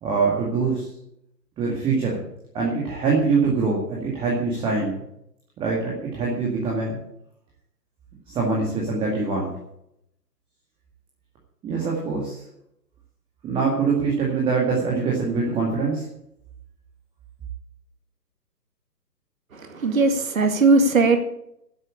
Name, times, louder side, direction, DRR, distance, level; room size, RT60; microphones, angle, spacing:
voice 1, 0.0-0.9 1.6-2.2 2.5-5.0 5.6-7.0 8.3-9.5 11.6-12.4 13.4-16.1, right 4 dB, 10° right, -3 dB, 2.0 m, -24 dB
voice 2, 19.5-21.2, right 3 dB, 55° right, 6 dB, 2.3 m, -19 dB
12.0 x 8.0 x 8.6 m, 0.78 s
figure-of-eight pair, 135°, 50 cm